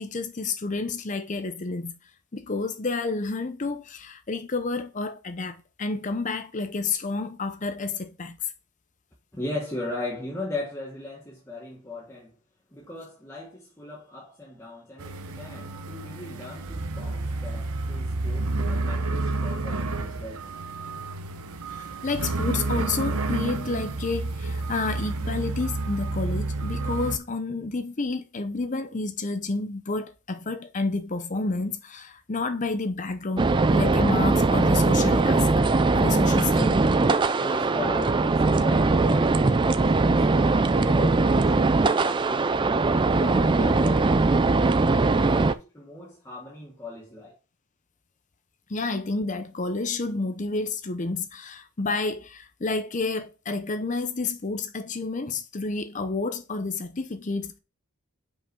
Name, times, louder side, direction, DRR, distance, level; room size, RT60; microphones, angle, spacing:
voice 1, 0.0-1.9 2.3-8.5 21.7-35.5 35.9-36.7 48.7-57.6, left 3 dB, 35° left, 0.6 m, -30 dB
voice 2, 9.3-12.3 12.7-20.5 36.3-36.9 37.4-42.5 42.9-44.9 45.2-47.4, left 1 dB, 10° left, 1.2 m, -38 dB
sound 1, 15.0-27.2, right 2 dB, 80° right, 0.8 m, -30 dB
sound 2, 33.4-45.5, right 3 dB, 20° right, 0.3 m, -21 dB
5.7 x 5.2 x 4.6 m
head